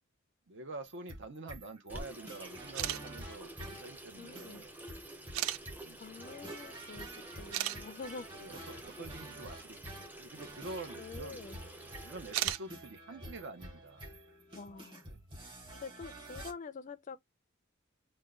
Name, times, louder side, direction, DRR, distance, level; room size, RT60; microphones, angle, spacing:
voice 1, 0.5-4.8 5.7-6.0 8.3-11.4 12.0-14.1 15.0-15.2, right 2 dB, 60° right, 0.8 m, -47 dB
sound 1, 0.8-16.5, right 1 dB, 25° right, 1.5 m, -49 dB
Water tap faucet / Sink (filling or washing), 1.9-12.5, right 1 dB, 10° right, 0.6 m, -49 dB
sound 2, 2.7-3.0 4.0-4.1 5.3-5.6 7.0-7.1 7.5-7.8 10.4-10.5 12.2-12.6, right 13 dB, 85° right, 0.3 m, -33 dB
voice 2, 4.2-4.6 6.0-8.3 11.0-11.6 14.5-15.0 15.7-17.2, left 4 dB, 40° left, 0.4 m, -46 dB
3.6 x 2.2 x 3.6 m
head